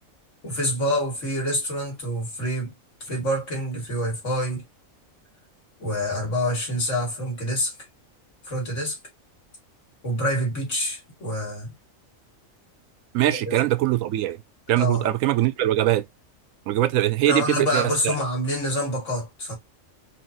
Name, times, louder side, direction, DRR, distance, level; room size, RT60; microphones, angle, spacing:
voice 1, 0.4-2.7 3.0-4.6 5.8-7.8 8.4-9.0 10.0-11.7 13.3-13.6 14.8-15.1 17.2-19.6, equal, 65° left, 2.4 m, -27 dB
voice 2, 13.1-14.4 14.7-16.0 16.7-18.1, right 14 dB, 80° right, 1.0 m, -22 dB
4.4 x 2.9 x 2.7 m
omnidirectional pair, 1.4 m